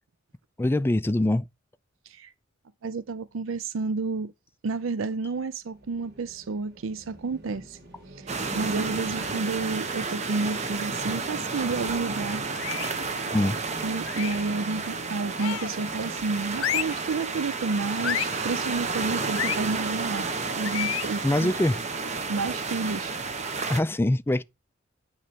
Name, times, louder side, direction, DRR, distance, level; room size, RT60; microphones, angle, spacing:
voice 1, 0.6-1.5 13.3-13.6 21.2-21.8 23.7-24.4, left 1 dB, 10° left, 0.4 m, -23 dB
voice 2, 2.8-4.3 4.6-7.8 8.2-12.4 13.8-21.5 22.3-23.1, right 4 dB, 80° right, 0.5 m, -30 dB
sound 1, 5.6-19.5, right 1 dB, 55° right, 2.2 m, -46 dB
sound 2, 8.3-23.8, right 4 dB, 35° right, 0.9 m, -31 dB
sound 3, 12.5-13.0 14.1-14.5 15.4-15.8 16.6-17.0 18.0-18.4 19.3-19.6 20.6-21.1, left 12 dB, 90° left, 0.4 m, -30 dB
9.2 x 3.3 x 5.8 m
head